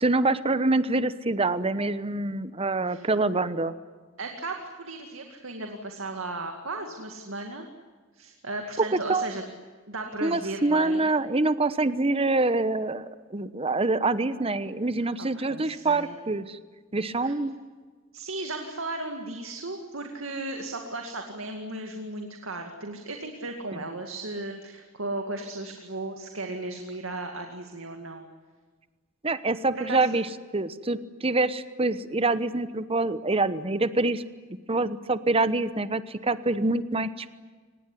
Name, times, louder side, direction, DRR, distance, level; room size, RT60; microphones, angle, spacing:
voice 1, 0.0-3.7 8.8-9.3 10.2-16.6 16.9-17.6 23.7-23.8 29.2-34.2 34.7-37.3, right 2 dB, 30° right, 14 dB, 1.0 m, -26 dB
voice 2, 4.2-7.7 8.1-9.5 9.9-11.1 15.3-16.1 17.2-17.3 18.1-28.3 29.7-30.1, right 2 dB, 80° right, 4 dB, 2.3 m, -35 dB
24.5 x 20.5 x 9.9 m, 1.4 s
head